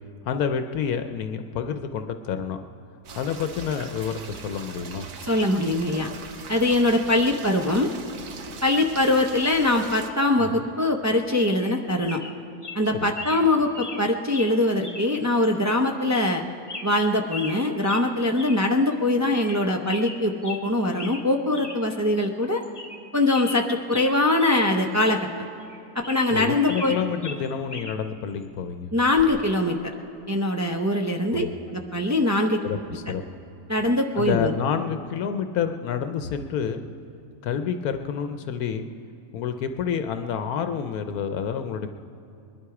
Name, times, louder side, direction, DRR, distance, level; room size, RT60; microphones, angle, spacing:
voice 1, 0.3-2.6 3.2-5.1 10.4-10.6 13.0-13.1 26.3-28.9 31.3-31.5 32.6-33.2 34.1-36.8 37.4-38.9 39.3-41.9, left 7 dB, 80° left, 8 dB, 1.1 m, -28 dB
sound 1, 3.0-10.1, right 5 dB, 80° right, 1.5 m, -41 dB
voice 2, 5.3-6.1 6.5-7.9 8.6-12.2 12.7-16.4 16.8-22.6 23.1-25.2 25.9-26.9 28.9-29.8 30.3-32.6 33.7-34.6, left 2 dB, 25° right, 2 dB, 0.3 m, -22 dB
sound 2, 11.6-11.8 12.0-12.3 12.6-12.8 13.1-13.4 13.7-14.0 14.3-14.5 14.8-15.1 15.4-15.5 16.1-16.4 16.7-17.6 17.8-18.1 18.4-18.6 18.9-19.0 19.4-19.6 19.8-20.6 21.0-21.2 21.5-21.8 22.2-22.3 22.6-23.0 23.3-24.6 24.9-25.0 25.6-26.9 27.2-28.0 29.2-29.4, left 3 dB, 20° left, 0.7 m, -38 dB
21.0 x 11.5 x 4.8 m, 2.8 s
omnidirectional pair, 1.6 m